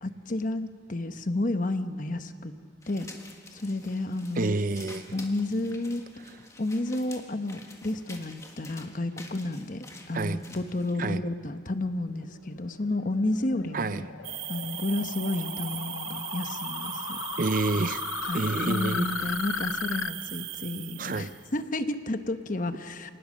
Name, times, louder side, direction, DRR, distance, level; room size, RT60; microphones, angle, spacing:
voice 1, 0.0-2.5 2.9-3.2 3.5-4.6 5.1-6.0 6.6-14.1 14.5-17.2 18.2-23.1, left 2 dB, 40° left, 9 dB, 1.0 m, -31 dB
sound 1, 2.8-10.9, left 2 dB, 15° left, 1.6 m, -49 dB
voice 2, 4.4-5.2 6.3-6.4 10.1-10.4 11.0-11.3 13.7-14.1 17.4-18.0 18.3-19.1 21.0-21.3, right 3 dB, 40° right, 14 dB, 0.5 m, -29 dB
sound 2, 12.1-20.1, left 7 dB, 90° left, 0.7 m, -36 dB
sound 3, 14.2-21.5, right 14 dB, 85° right, 0.9 m, -38 dB
27.5 x 19.0 x 6.6 m, 2.2 s
head